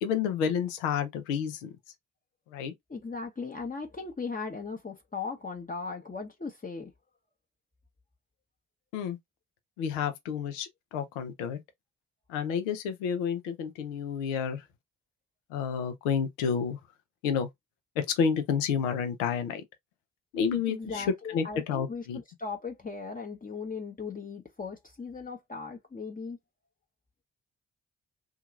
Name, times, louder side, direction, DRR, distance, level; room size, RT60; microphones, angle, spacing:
voice 1, 0.0-1.7 2.5-2.7 8.9-9.2 9.8-11.6 12.3-14.6 15.5-16.8 17.2-17.5 18.0-19.6 20.3-21.1 21.3-22.2, left 7 dB, 85° left, 0.7 m, -30 dB
voice 2, 2.9-6.9 20.7-26.4, left 4 dB, 20° left, 0.9 m, -38 dB
2.8 x 2.4 x 2.4 m
hypercardioid pair, 40°, 37 cm